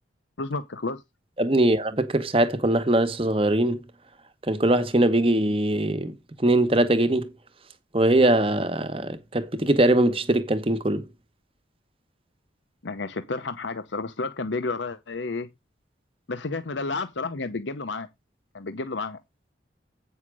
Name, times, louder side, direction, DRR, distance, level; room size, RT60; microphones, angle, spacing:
voice 1, 0.4-1.0 12.8-15.5 16.3-18.1 18.5-19.2, left 3 dB, 75° left, 0.8 m, -31 dB
voice 2, 1.4-3.8 4.5-7.3 7.9-11.1, right 1 dB, 30° right, 1.0 m, -22 dB
8.9 x 5.7 x 4.8 m
head